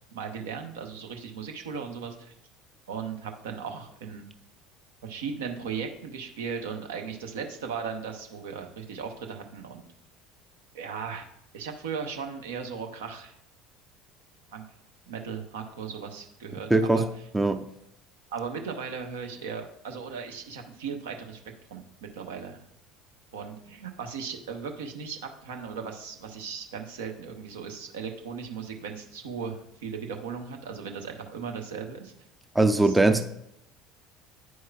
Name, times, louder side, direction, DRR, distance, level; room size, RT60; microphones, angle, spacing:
voice 1, 0.1-2.3 2.9-4.3 5.0-9.8 10.7-11.3 11.5-13.3 14.5-14.6 15.1-17.0 18.3-21.4 21.7-21.9 22.1-22.6 23.3-32.1 32.8-33.2, right 6 dB, 70° right, 4 dB, 0.8 m, -37 dB
voice 2, 16.7-17.0 17.3-17.6 32.6-33.2, right 2 dB, 10° right, 9 dB, 0.4 m, -21 dB
9.4 x 4.7 x 2.3 m, 0.78 s
figure-of-eight pair, 65°, 0 cm